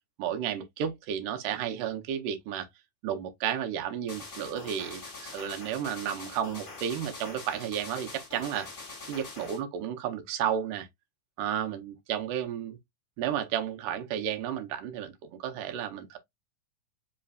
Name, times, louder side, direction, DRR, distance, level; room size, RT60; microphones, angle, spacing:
voice 1, 0.2-2.7 3.0-8.7 9.1-10.9 11.4-12.8 13.2-16.2, right 9 dB, 90° right, 2.4 m, -32 dB
sound 1, 4.1-9.6, left 3 dB, 35° left, 0.9 m, -44 dB
5.3 x 3.3 x 2.3 m
omnidirectional pair, 3.6 m